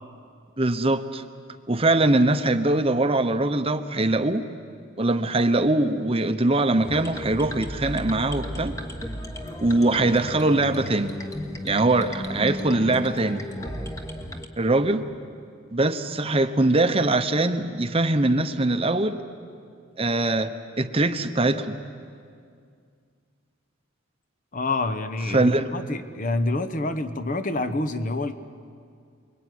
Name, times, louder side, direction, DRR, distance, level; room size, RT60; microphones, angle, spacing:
voice 1, 0.6-1.2 1.7-4.4 5.0-8.7 9.6-11.1 11.6-13.4 14.6-15.1 15.7-19.2 20.0-20.5 20.8-21.8 25.3-25.7, right 2 dB, 25° right, 9 dB, 0.9 m, -22 dB
sound 1, 6.8-14.5, equal, 15° left, 1.3 m, -34 dB
voice 2, 24.5-28.3, left 2 dB, 40° left, 10 dB, 1.0 m, -27 dB
28.5 x 22.0 x 9.4 m, 2.3 s
head